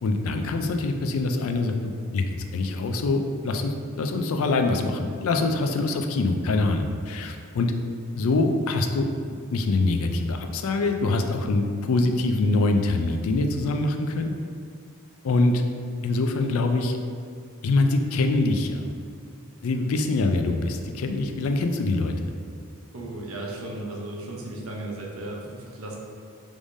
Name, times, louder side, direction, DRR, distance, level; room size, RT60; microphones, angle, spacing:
voice 1, 0.0-2.3 2.5-7.7 8.1-9.1 9.5-14.3 15.2-15.6 16.0-17.0 17.6-18.9 19.6-22.1, left 2 dB, 70° left, 5 dB, 0.4 m, -24 dB
voice 2, 22.9-26.0, right 1 dB, 70° right, -2 dB, 0.8 m, -35 dB
4.9 x 3.5 x 2.6 m, 2.2 s
head